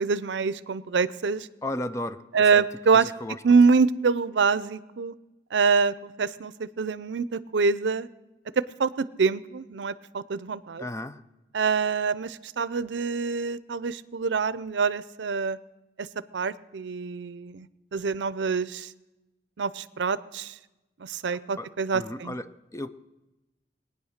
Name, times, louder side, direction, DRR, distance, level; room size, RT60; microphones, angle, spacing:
voice 1, 0.0-1.5 2.3-3.1 3.4-5.1 5.5-8.1 8.6-10.8 11.5-15.6 16.0-16.1 16.3-18.9 19.6-20.5 21.0-22.3, right 5 dB, 80° right, 17 dB, 0.5 m, -25 dB
voice 2, 1.6-2.6 2.9-3.4 10.8-11.2 21.6-22.9, left 1 dB, 15° left, 12 dB, 0.5 m, -35 dB
19.5 x 9.5 x 6.5 m, 1.0 s
head